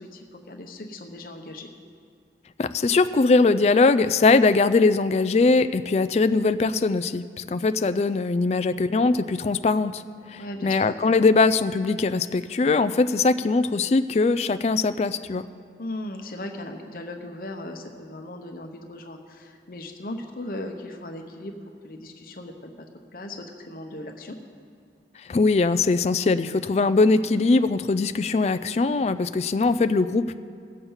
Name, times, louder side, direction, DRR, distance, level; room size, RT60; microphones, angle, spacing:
voice 1, 0.0-1.7 10.4-10.7 15.8-21.5 21.8-22.7 23.1-24.4, left 1 dB, 55° left, 4 dB, 0.8 m, -37 dB
voice 2, 2.6-10.0 10.3-15.4 25.3-30.4, left 3 dB, 35° left, 12 dB, 0.3 m, -21 dB
18.0 x 7.1 x 5.5 m, 2.3 s
head